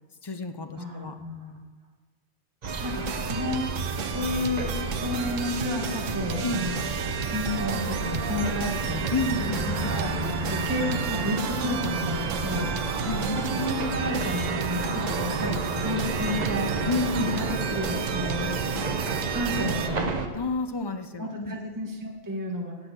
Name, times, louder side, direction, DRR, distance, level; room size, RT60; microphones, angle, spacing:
voice 1, 0.2-1.2 6.4-6.6 9.1-10.2 13.1-13.4 15.0-15.1 16.8-17.4 20.3-21.6, left 3 dB, 30° left, 8 dB, 0.5 m, -30 dB
voice 2, 0.8-1.6 2.8-3.6 4.1-6.8 7.2-9.1 9.9-10.1 10.5-12.7 13.5-16.7 17.2-18.5 19.3-20.1 21.2-22.8, left 1 dB, 15° right, -1 dB, 1.4 m, -31 dB
sound 1, 2.6-20.3, right 3 dB, 35° right, 0.9 m, -31 dB
sound 2, 2.7-19.9, right 7 dB, 90° right, 1.1 m, -33 dB
10.5 x 7.1 x 8.0 m, 1.3 s
omnidirectional pair, 1.3 m